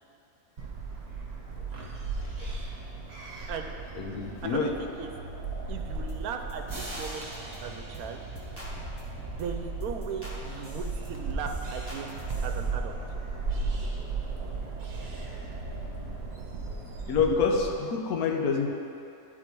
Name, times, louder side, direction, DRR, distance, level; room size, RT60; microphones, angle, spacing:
sound 1, 0.6-17.7, right 3 dB, 45° right, 1.1 m, -36 dB
voice 1, 2.2-2.6 3.9-4.7 17.1-18.7, left 5 dB, 80° left, 2 dB, 1.2 m, -27 dB
voice 2, 4.5-5.1 5.7-7.2 7.6-8.2 9.3-12.1 12.4-13.0, right 6 dB, 75° right, 5 dB, 1.0 m, -37 dB
sound 2, 6.1-6.2 6.5-7.1 7.3-7.6 7.9-8.1 8.4-9.4 9.8-10.4 10.6-12.7, right 1 dB, 10° left, 1.0 m, -43 dB
sound 3, 6.7-9.4, right 1 dB, 20° right, 0.7 m, -44 dB
10.5 x 4.2 x 4.5 m, 2.7 s
omnidirectional pair, 1.6 m